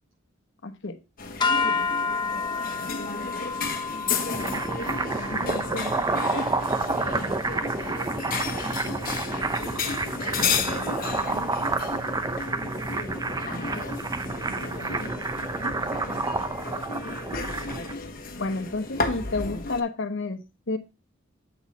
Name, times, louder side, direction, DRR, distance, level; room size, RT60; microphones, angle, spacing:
voice 1, 0.6-1.0 5.3-5.8 6.3-6.5 18.4-20.8, left 3 dB, 65° left, 1.0 m, -31 dB
sound 1, 1.2-19.8, left 4 dB, 45° left, 1.1 m, -33 dB
sound 2, 1.4-7.8, left 4 dB, 25° left, 0.9 m, -31 dB
sound 3, 4.1-17.9, right 3 dB, 20° right, 0.5 m, -29 dB
voice 2, 4.8-11.0 11.6-13.1 14.0-15.3 15.6-16.4, right 2 dB, 75° right, 5.6 m, -49 dB
7.8 x 6.4 x 4.0 m
head